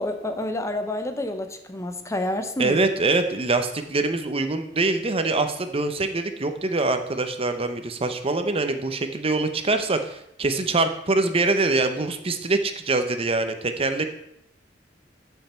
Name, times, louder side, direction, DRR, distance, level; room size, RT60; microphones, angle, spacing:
voice 1, 0.0-2.8, left 1 dB, 15° left, 7 dB, 0.8 m, -29 dB
voice 2, 2.6-14.1, right 3 dB, 30° right, 8 dB, 0.8 m, -24 dB
13.5 x 5.5 x 4.4 m, 0.77 s
head